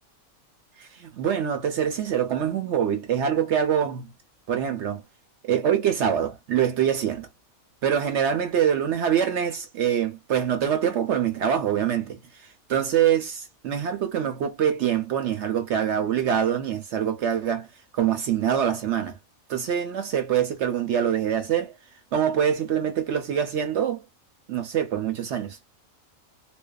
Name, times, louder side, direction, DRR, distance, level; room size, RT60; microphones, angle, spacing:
voice 1, 0.8-4.1 4.5-5.0 5.4-7.3 7.8-17.7 17.9-19.2 19.5-21.7 22.1-24.0 24.5-25.6, right 9 dB, 65° right, 0.8 m, -25 dB
2.5 x 2.2 x 2.2 m
omnidirectional pair, 1.5 m